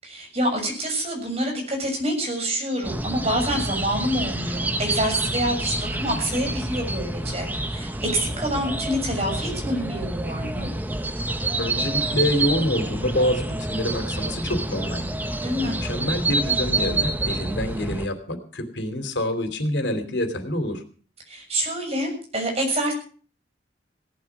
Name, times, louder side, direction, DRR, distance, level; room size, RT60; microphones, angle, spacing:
voice 1, 0.0-10.7 15.4-15.8 21.3-22.9, equal, 35° right, 2 dB, 6.9 m, -27 dB
sound 1, 2.8-18.1, right 2 dB, 10° right, 1.0 m, -28 dB
voice 2, 11.6-15.1 15.6-20.8, left 1 dB, 90° left, 8 dB, 3.0 m, -26 dB
17.5 x 11.5 x 6.1 m, 0.43 s
head